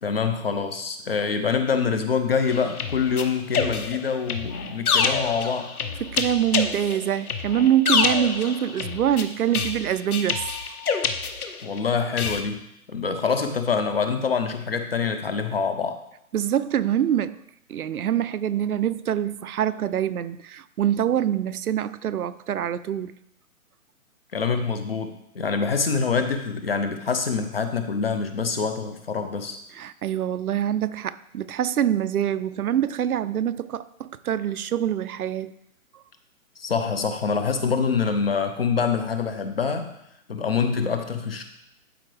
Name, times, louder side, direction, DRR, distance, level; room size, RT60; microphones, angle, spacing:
voice 1, 0.0-5.7 11.6-12.6 12.9-16.0 24.3-29.6 36.6-39.9 40.3-41.4, left 5 dB, 45° left, 0.7 m, -25 dB
sound 1, 2.5-11.8 12.2-12.4, left 5 dB, 80° left, 1.0 m, -27 dB
voice 2, 6.0-10.5 16.3-17.4 17.7-23.1 29.7-35.5, right 10 dB, 80° right, 0.6 m, -25 dB
12.0 x 4.6 x 3.3 m
hypercardioid pair, 170°, 43 cm